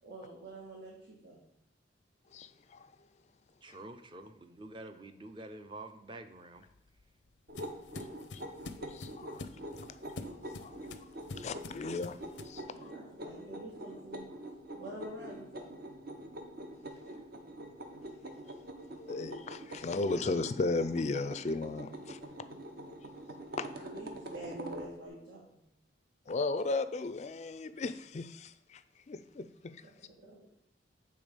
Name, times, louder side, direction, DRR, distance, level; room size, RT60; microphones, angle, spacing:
voice 1, 0.0-1.4 12.7-14.3 14.7-15.7 23.8-25.6 30.2-30.5, right 1 dB, 85° right, 1.6 m, -46 dB
voice 2, 2.3-2.9 3.7-3.8 8.3-8.4 8.8-9.5 9.9-10.0 10.6-10.8 11.3-12.9 18.9-22.2 23.6-23.7 26.3-28.8 29.1-29.8, left 3 dB, 40° left, 0.4 m, -36 dB
voice 3, 3.6-6.7 19.9-20.5, right 2 dB, 25° right, 0.6 m, -48 dB
sound 1, 6.6-12.6, left 3 dB, 90° left, 0.5 m, -47 dB
sound 2, 7.5-24.9, right 1 dB, 55° right, 0.8 m, -45 dB
8.0 x 3.5 x 5.2 m
head